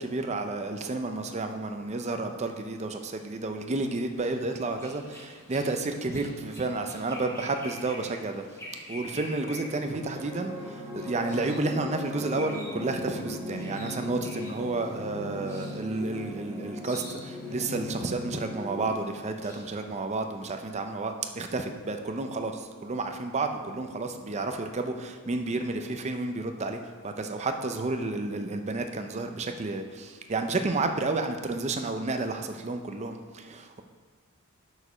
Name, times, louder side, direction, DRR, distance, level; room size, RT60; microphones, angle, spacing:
voice 1, 0.0-8.4 8.9-33.8, right 3 dB, 30° right, 6 dB, 0.5 m, -31 dB
sound 1, 4.1-19.9, equal, 15° left, 1.5 m, -48 dB
sound 2, 9.3-18.9, left 1 dB, 15° right, 1.3 m, -38 dB
8.2 x 5.0 x 5.4 m, 1.5 s
head